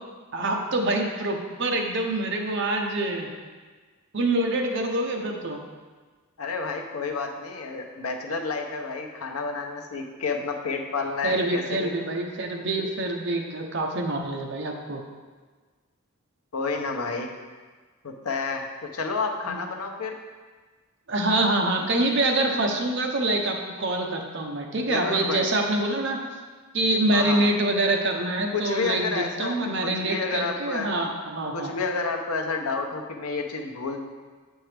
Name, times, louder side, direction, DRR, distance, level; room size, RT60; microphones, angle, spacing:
voice 1, 0.3-3.3 4.1-5.6 11.2-15.0 19.5-19.6 21.1-26.2 26.7-31.7, right 2 dB, 55° right, 2 dB, 0.7 m, -25 dB
voice 2, 6.4-11.9 16.5-17.3 18.0-20.1 24.8-25.5 27.1-27.5 28.5-31.0 31.5-34.0, left 4 dB, 80° left, 3 dB, 0.7 m, -30 dB
7.6 x 4.5 x 3.3 m, 1.4 s
head